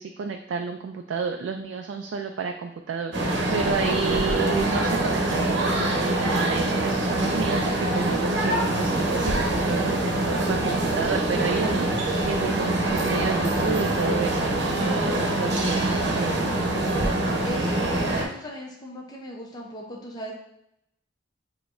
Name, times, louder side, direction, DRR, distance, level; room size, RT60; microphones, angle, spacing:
voice 1, 0.0-16.3, right 5 dB, 80° right, 4 dB, 0.3 m, -31 dB
sound 1, 3.1-18.2, right 1 dB, 65° right, 0.9 m, -24 dB
voice 2, 17.4-20.3, equal, 20° left, -2 dB, 0.6 m, -38 dB
6.9 x 2.9 x 2.5 m, 0.79 s
head